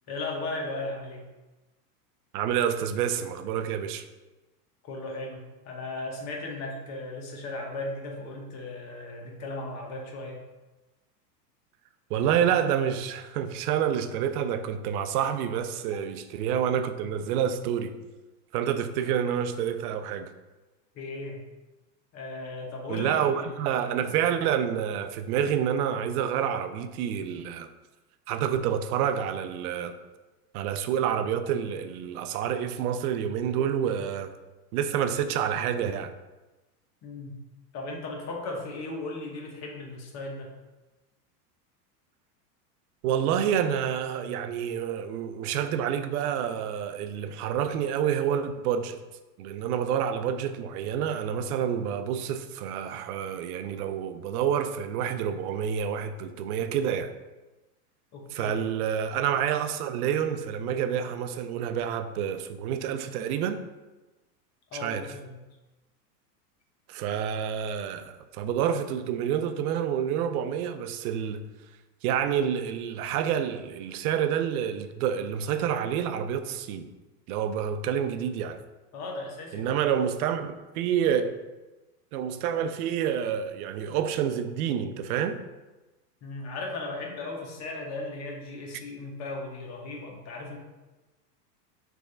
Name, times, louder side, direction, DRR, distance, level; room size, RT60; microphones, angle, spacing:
voice 1, 0.1-1.3 4.8-10.4 20.9-21.4 22.1-23.5 37.0-37.4 37.7-40.5 58.1-58.6 64.7-65.4 78.9-79.7 86.2-90.6, left 2 dB, 35° left, 1.0 m, -36 dB
voice 2, 2.3-4.0 12.1-17.9 18.5-20.3 22.9-27.7 28.3-29.9 30.5-34.3 34.7-36.1 43.0-49.0 49.4-57.1 58.3-63.6 64.7-65.1 66.9-71.5 72.0-76.9 77.3-78.6 79.5-81.4 82.1-85.4, right 8 dB, 65° right, 0.6 m, -28 dB
3.5 x 3.1 x 4.3 m
supercardioid pair, 120°, 48 cm